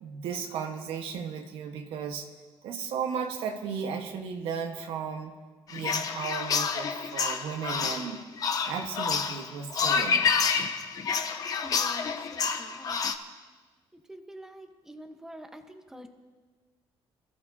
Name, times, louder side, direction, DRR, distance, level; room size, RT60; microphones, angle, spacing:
voice 1, 0.0-2.3 2.6-5.3 5.7-8.2 8.7-10.2, right 6 dB, 75° right, 3 dB, 1.4 m, -35 dB
sound 1, 5.7-13.1, left 6 dB, 40° left, 0.8 m, -28 dB
voice 2, 11.6-13.4 13.9-16.1, equal, 5° right, 5 dB, 1.1 m, -47 dB
25.5 x 14.5 x 2.8 m, 1.4 s
cardioid pair, 155°, 10 cm